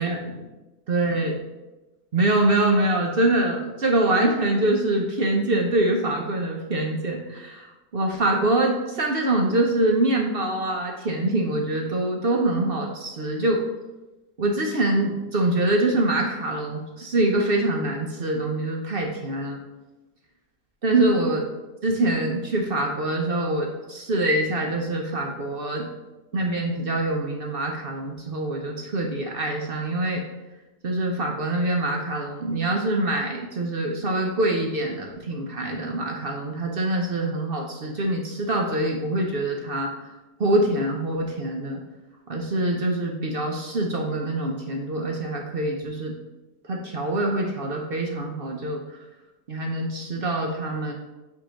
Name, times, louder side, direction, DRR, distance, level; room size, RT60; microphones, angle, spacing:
voice 1, 0.9-1.4 2.1-13.6 14.4-19.6 20.8-21.5 21.8-25.9 26.3-30.2 30.8-39.9 40.4-41.8 42.3-46.1 46.7-49.0 49.5-50.9, right 1 dB, 50° right, 1 dB, 0.7 m, -24 dB
8.4 x 2.8 x 5.0 m, 1.1 s
omnidirectional pair, 1.8 m